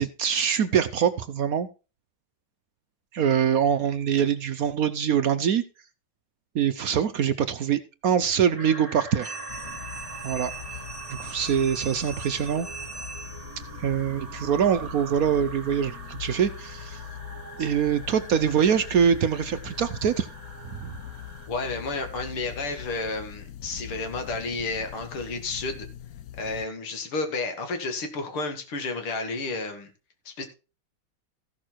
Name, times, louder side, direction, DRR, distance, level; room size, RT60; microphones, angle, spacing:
voice 1, 0.0-1.7 3.1-5.6 6.5-9.3 10.2-10.5 11.1-12.7 13.8-17.0 17.6-20.3 20.7-21.0, right 8 dB, 70° right, 11 dB, 0.8 m, -24 dB
sound 1, 8.6-21.5, right 4 dB, 45° right, 1.7 m, -43 dB
sound 2, 9.2-13.7, right 4 dB, 30° right, 0.5 m, -40 dB
sound 3, 9.5-26.7, left 10 dB, 70° left, 0.8 m, -42 dB
voice 2, 21.5-25.9 26.4-29.9 30.3-30.5, left 3 dB, 90° left, 6 dB, 2.8 m, -31 dB
14.5 x 6.5 x 4.5 m, 0.32 s
omnidirectional pair, 2.3 m